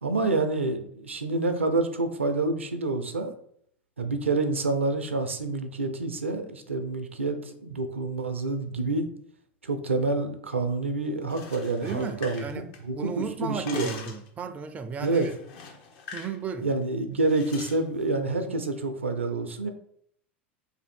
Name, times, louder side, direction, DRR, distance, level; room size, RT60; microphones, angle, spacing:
voice 1, 0.0-3.3 4.0-9.1 9.6-14.0 15.0-15.3 16.6-19.7, right 3 dB, 85° right, 0.4 m, -28 dB
sound 1, 11.2-13.1 13.4-14.3 15.0-16.4 16.6-16.8 17.3-17.8, left 5 dB, 55° left, 0.8 m, -43 dB
voice 2, 11.8-12.7 12.9-15.3 16.1-16.7, right 6 dB, 20° right, 0.4 m, -34 dB
2.7 x 2.5 x 4.2 m
figure-of-eight pair, 85°, 6 cm